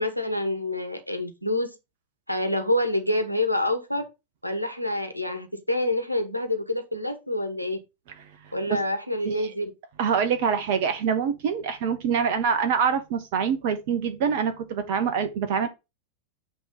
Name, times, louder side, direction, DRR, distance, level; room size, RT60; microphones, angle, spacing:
voice 1, 0.0-1.7 2.3-4.0 4.4-7.8 8.5-9.7, left 1 dB, 90° right, 1.2 m, -27 dB
voice 2, 10.0-15.7, right 6 dB, 50° right, 0.8 m, -25 dB
8.2 x 3.1 x 5.4 m
figure-of-eight pair, 90°, 0 cm